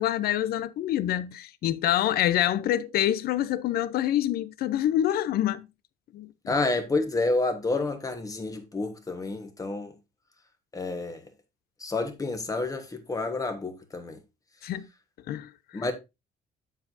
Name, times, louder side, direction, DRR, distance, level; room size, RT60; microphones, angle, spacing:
voice 1, 0.0-5.7 6.1-6.5 14.6-14.9 15.3-15.9, left 12 dB, 65° left, 0.6 m, -26 dB
voice 2, 6.5-9.9 10.7-11.2 11.8-14.2 15.7-15.9, left 3 dB, 20° left, 1.2 m, -29 dB
7.5 x 7.3 x 2.6 m
cardioid pair, 110°, 17 cm